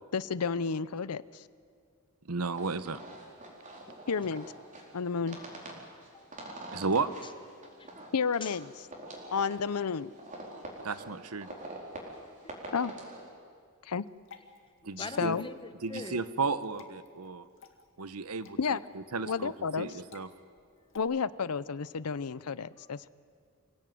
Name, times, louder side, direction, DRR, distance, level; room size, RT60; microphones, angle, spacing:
voice 1, 0.1-1.4 4.1-4.5 4.9-5.4 8.1-8.7 9.3-10.1 12.7-12.9 13.8-14.0 15.0-15.5 18.6-18.8 19.2-19.9 20.9-23.1, left 5 dB, 80° left, 18 dB, 0.6 m, -31 dB
voice 2, 2.2-3.0 6.7-7.1 10.8-11.5 14.8-15.3 15.8-17.5 18.0-18.8 19.1-20.3, right 4 dB, 75° right, 14 dB, 1.0 m, -33 dB
sound 1, 2.5-13.3, right 1 dB, 35° right, 4.4 m, -46 dB
voice 3, 5.4-5.8 6.1-6.8 7.2-7.3 7.6-7.9 8.4-8.6 9.3-9.5 12.0-12.2 12.4-12.7 14.8-16.2 22.8-22.9, left 3 dB, 20° left, 10 dB, 1.2 m, -46 dB
Water / Drip, 14.0-21.0, left 7 dB, 60° left, 2.2 m, -55 dB
26.0 x 17.5 x 9.3 m, 2.1 s
head